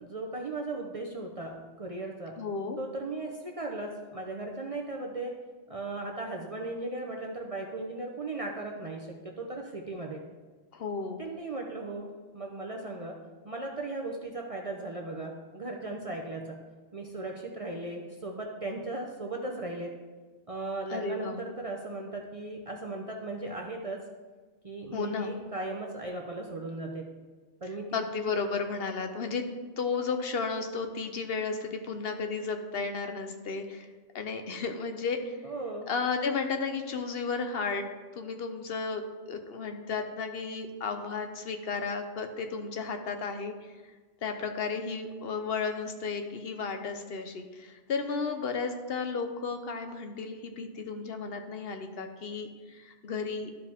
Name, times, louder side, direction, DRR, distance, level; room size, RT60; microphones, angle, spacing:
voice 1, 0.0-2.4 2.8-5.3 5.7-10.2 11.2-12.1 12.3-13.2 13.4-16.6 16.9-19.9 20.5-24.0 24.6-27.1 27.6-28.0 35.4-35.9, right 2 dB, 35° right, 0 dB, 0.6 m, -37 dB
voice 2, 2.4-2.8 10.7-11.2 20.9-21.4 24.9-25.3 27.9-29.5 29.8-33.9 34.1-35.4 35.9-37.9 38.2-43.5 44.2-53.5, left 4 dB, 60° left, 6 dB, 0.9 m, -33 dB
12.5 x 4.9 x 3.5 m, 1.4 s
omnidirectional pair, 1.2 m